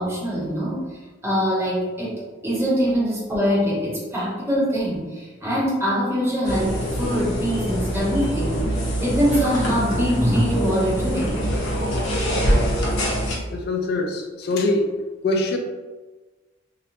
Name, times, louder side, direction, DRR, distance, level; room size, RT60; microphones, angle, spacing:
voice 1, 0.0-11.4, equal, 15° right, -7 dB, 0.7 m, -23 dB
sound 1, 6.4-13.3, equal, 75° left, 0.7 m, -24 dB
voice 2, 13.5-14.9 15.2-15.6, left 2 dB, 50° left, 2 dB, 0.3 m, -23 dB
2.9 x 2.0 x 2.6 m, 1.3 s
head